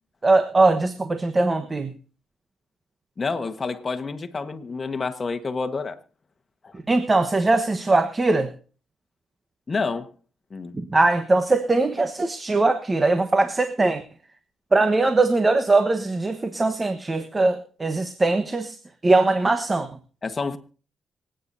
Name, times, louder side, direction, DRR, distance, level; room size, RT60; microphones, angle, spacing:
voice 1, 0.2-1.9 6.9-8.5 10.7-14.0 14.7-18.8 19.0-19.9, right 2 dB, 30° right, 1.2 m, -21 dB
voice 2, 3.2-6.0 6.6-6.7 9.7-10.1 10.5-10.7 20.2-20.6, left 4 dB, 40° left, 1.4 m, -28 dB
25.5 x 9.0 x 2.7 m
supercardioid pair, 65°, 0 cm